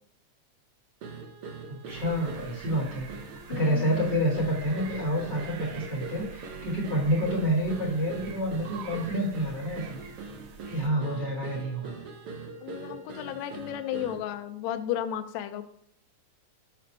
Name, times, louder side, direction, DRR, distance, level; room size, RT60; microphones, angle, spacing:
sound 1, 1.0-14.3, right 4 dB, 70° right, 1.5 m, -42 dB
voice 1, 1.7-3.1 3.5-10.0 10.7-11.9, equal, 25° right, -4 dB, 1.9 m, -28 dB
sound 2, 1.9-10.9, right 7 dB, 85° right, 1.4 m, -46 dB
voice 2, 3.5-3.9 11.0-11.3 12.6-15.6, left 11 dB, 80° left, 9 dB, 1.7 m, -34 dB
5.8 x 4.2 x 4.5 m, 0.70 s
omnidirectional pair, 3.5 m